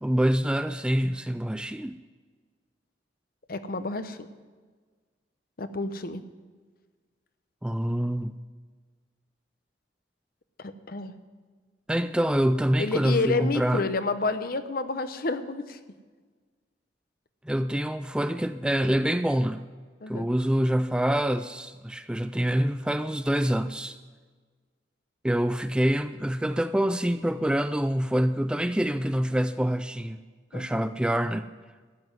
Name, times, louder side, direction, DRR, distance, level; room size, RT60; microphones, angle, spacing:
voice 1, 0.0-2.0 7.6-8.4 11.9-13.8 17.4-19.6 20.1-24.0 25.2-30.2 30.5-31.5, equal, 5° right, 11 dB, 0.3 m, -26 dB
voice 2, 3.5-4.2 5.6-6.2 10.6-11.2 12.8-15.8 20.0-20.3 30.5-30.7, left 3 dB, 50° left, 11 dB, 0.8 m, -29 dB
13.5 x 7.9 x 9.4 m, 1.5 s
head